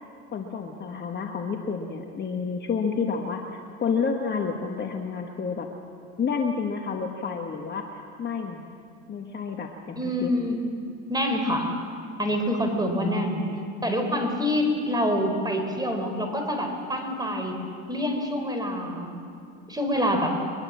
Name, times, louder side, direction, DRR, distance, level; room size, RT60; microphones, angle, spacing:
voice 1, 0.3-5.7 6.2-8.6 9.1-10.3, left 5 dB, 25° left, 2 dB, 1.6 m, -30 dB
voice 2, 10.0-10.6 11.1-11.7 12.2-13.4 13.8-17.6 17.9-19.1 19.7-20.3, equal, 10° right, 4 dB, 4.2 m, -26 dB
23.0 x 21.5 x 7.4 m, 2.4 s
supercardioid pair, 115°, 39 cm